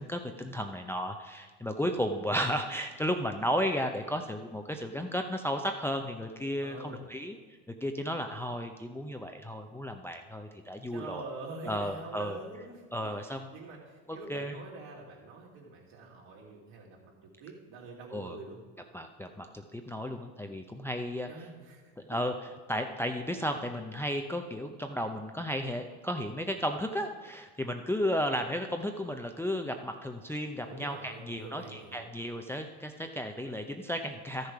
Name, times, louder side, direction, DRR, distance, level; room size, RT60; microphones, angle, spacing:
voice 1, 0.0-7.4 7.8-11.2 11.6-12.4 12.9-13.5 14.1-14.6 18.1-18.4 18.9-21.3 22.1-22.3 22.7-34.5, equal, 5° left, 4 dB, 0.6 m, -34 dB
voice 2, 6.6-7.1 10.9-13.1 13.5-17.1 17.4-18.6 21.3-21.8 22.1-22.2 30.6-32.0, right 3 dB, 65° right, -2 dB, 3.3 m, -45 dB
12.5 x 6.7 x 4.8 m, 1.4 s
hypercardioid pair, 85°, 42 cm